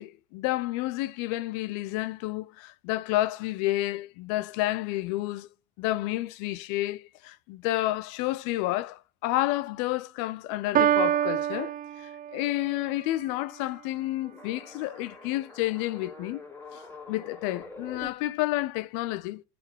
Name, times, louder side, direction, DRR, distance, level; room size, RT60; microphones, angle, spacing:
voice 1, 0.0-5.5 5.8-16.4 16.7-16.8 17.1-19.4, left 17 dB, 55° left, 0.7 m, -30 dB
Piano, 10.7-12.7, right 10 dB, 25° right, 0.5 m, -26 dB
sound 1, 14.2-18.1, left 3 dB, 5° left, 2.3 m, -45 dB
7.7 x 6.7 x 7.3 m
figure-of-eight pair, 65°, 35 cm